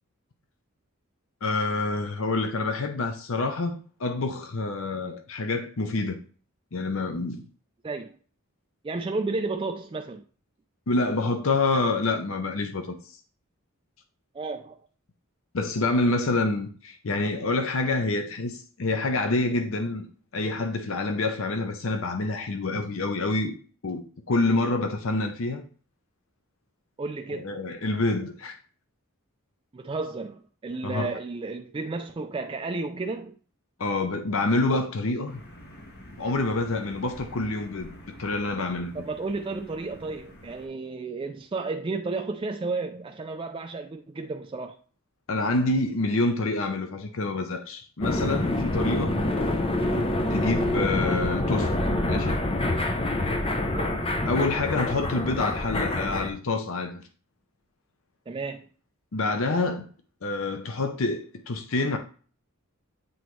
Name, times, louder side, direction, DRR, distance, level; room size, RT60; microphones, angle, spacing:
voice 1, 1.4-6.2 6.7-7.4 10.9-13.0 15.5-20.1 20.3-23.5 23.8-25.6 27.3-28.6 30.8-31.1 33.8-35.4 36.2-37.9 38.2-39.0 45.3-49.2 50.3-51.7 52.0-52.5 54.3-57.0 59.1-59.9 60.2-62.0, left 2 dB, 65° left, 0.7 m, -27 dB
voice 2, 8.8-10.2 14.3-14.8 27.0-27.6 29.7-33.3 38.9-44.8 53.7-54.2 58.3-58.7, right 3 dB, 25° right, 0.3 m, -32 dB
sound 1, 35.3-40.7, equal, 50° left, 1.4 m, -47 dB
sound 2, 48.0-56.3, left 1 dB, 25° left, 0.6 m, -26 dB
7.9 x 4.0 x 3.1 m
head